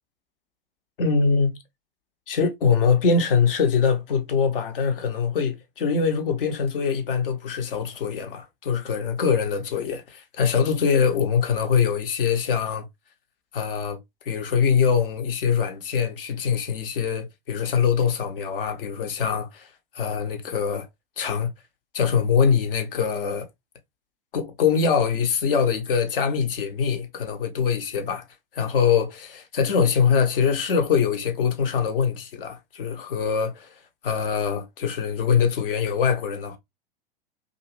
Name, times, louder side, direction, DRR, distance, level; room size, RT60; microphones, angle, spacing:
voice 1, 1.0-1.6 2.3-12.8 13.5-14.0 14.3-19.7 19.9-20.9 21.2-21.5 21.9-23.5 24.3-28.2 28.5-33.7 34.0-36.6, left 6 dB, 65° left, 0.8 m, -23 dB
2.5 x 2.5 x 2.9 m
figure-of-eight pair, 90°, 30 cm